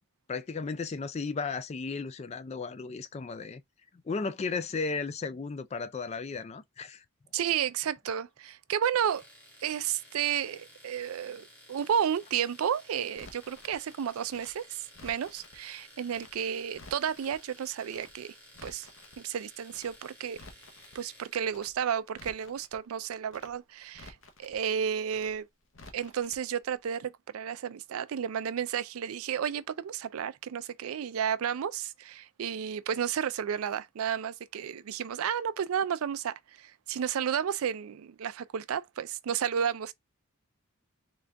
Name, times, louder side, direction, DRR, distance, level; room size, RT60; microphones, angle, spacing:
voice 1, 0.3-3.6 4.1-7.0, left 4 dB, 30° left, 0.3 m, -35 dB
voice 2, 7.3-9.2 9.6-18.3 18.6-18.9 19.2-20.4 20.9-25.4 25.9-39.9, right 8 dB, 80° right, 0.4 m, -32 dB
Domestic sounds home sounds, 9.1-21.4, left 1 dB, 5° left, 1.2 m, -55 dB
Crackle, 13.2-13.8 14.3-15.6 16.1-16.3 16.6-17.4 17.9-18.1 18.4-19.2 19.7-19.9 20.2-21.0 21.5-21.7 22.0-22.8 23.3-23.5 23.8-24.6 25.1-25.3 25.6-26.4 26.6-26.7, left 3 dB, 65° left, 0.8 m, -52 dB
3.8 x 2.4 x 3.3 m
head